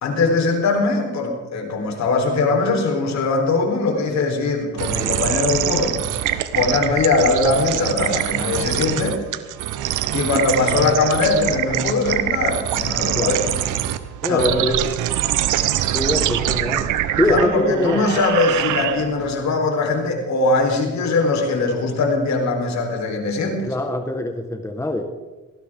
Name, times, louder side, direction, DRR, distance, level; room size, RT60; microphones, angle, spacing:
voice 1, 0.0-6.0 6.5-9.2 10.1-13.6 14.2-14.8 17.2-23.7, left 3 dB, 65° left, 3 dB, 4.2 m, -21 dB
sound 1, 4.8-19.3, right 12 dB, 85° right, 1.0 m, -24 dB
voice 2, 13.1-13.5 14.2-14.8 15.9-16.9 17.2-18.0 23.6-25.1, left 1 dB, 10° left, 5 dB, 1.6 m, -23 dB
19.0 x 16.5 x 3.8 m, 1.2 s
cardioid pair, 90°, 30 cm